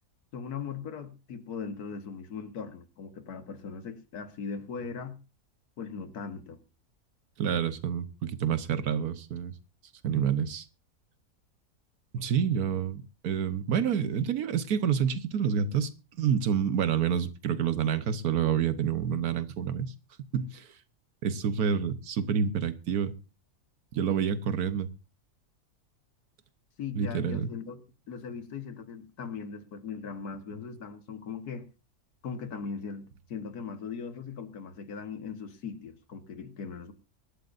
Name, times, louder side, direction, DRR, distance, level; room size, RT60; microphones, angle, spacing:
voice 1, 0.3-5.2 5.8-6.6 26.8-27.8 28.1-31.7 32.2-36.9, left 5 dB, 85° left, 1.9 m, -39 dB
voice 2, 7.4-9.5 10.0-10.7 12.1-15.9 16.2-19.9 20.3-20.7 21.2-23.1 23.9-24.9 27.0-27.5, right 7 dB, 80° right, 1.5 m, -28 dB
23.5 x 11.5 x 2.6 m
omnidirectional pair, 1.6 m